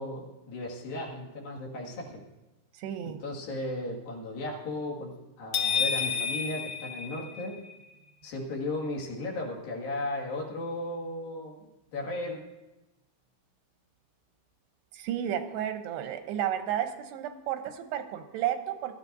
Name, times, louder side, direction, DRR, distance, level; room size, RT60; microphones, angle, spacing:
voice 1, 0.0-2.2 3.0-7.6 8.2-11.7 11.9-12.4, left 2 dB, 65° left, -2 dB, 3.7 m, -35 dB
voice 2, 2.7-3.2 14.9-19.0, right 10 dB, 90° right, 7 dB, 3.0 m, -32 dB
sound 1, 5.5-7.7, left 6 dB, 80° left, 1.2 m, -30 dB
21.5 x 13.5 x 2.6 m, 1.0 s
omnidirectional pair, 4.7 m